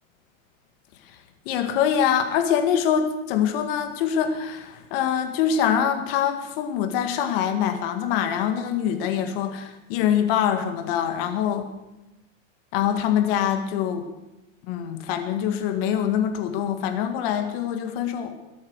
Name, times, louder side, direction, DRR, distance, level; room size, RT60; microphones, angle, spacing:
voice 1, 1.5-11.7 12.7-14.1 14.7-18.3, left 9 dB, 45° left, 7 dB, 2.0 m, -24 dB
22.0 x 8.6 x 6.4 m, 0.96 s
supercardioid pair, 160°, 40 cm